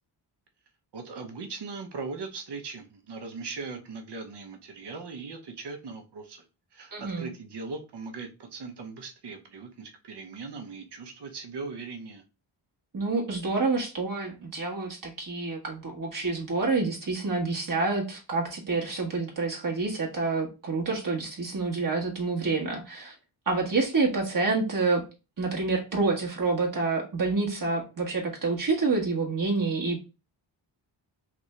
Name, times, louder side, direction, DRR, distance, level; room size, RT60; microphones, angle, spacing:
voice 1, 0.9-6.4 6.7-12.2, right 4 dB, 60° right, 1.0 m, -39 dB
voice 2, 6.9-7.3 12.9-23.1 23.5-25.0 25.4-30.0, right 3 dB, 45° right, 1.2 m, -28 dB
3.5 x 2.5 x 3.2 m
cardioid pair, 55°, 47 cm